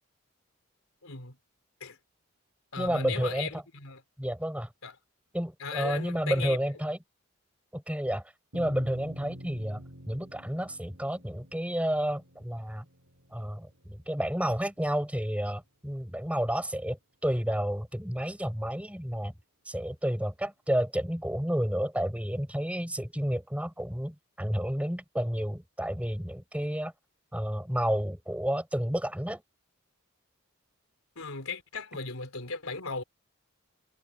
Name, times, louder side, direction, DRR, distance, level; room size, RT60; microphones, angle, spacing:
voice 1, 1.0-1.4 1.8-2.0 2.7-4.0 4.8-4.9 5.6-6.6 31.2-33.0, left 4 dB, 80° left, 3.6 m, -37 dB
voice 2, 2.8-3.6 4.2-4.7 5.3-7.0 7.7-8.2 8.5-12.9 13.3-19.3 19.7-26.9 27.3-29.4, equal, 5° right, 5.9 m, -31 dB
sound 1, 8.5-15.1, equal, 65° right, 5.5 m, -48 dB
head